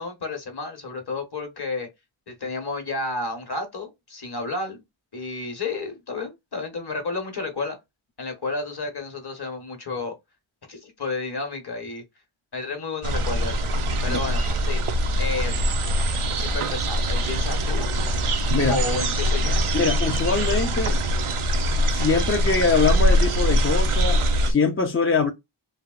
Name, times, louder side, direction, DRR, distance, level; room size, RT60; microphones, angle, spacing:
voice 1, 0.0-1.9 2.3-4.8 5.1-7.8 8.2-10.1 10.7-12.0 12.5-13.6 14.0-14.8 15.2-15.7 16.4-17.9 18.7-19.5, left 3 dB, 50° left, 1.2 m, -31 dB
sound 1, 13.0-24.5, equal, 80° right, 0.7 m, -23 dB
voice 2, 19.7-21.0 21.9-25.3, left 4 dB, 25° left, 0.5 m, -23 dB
3.3 x 2.7 x 2.4 m
wide cardioid pair, 60°, 50 cm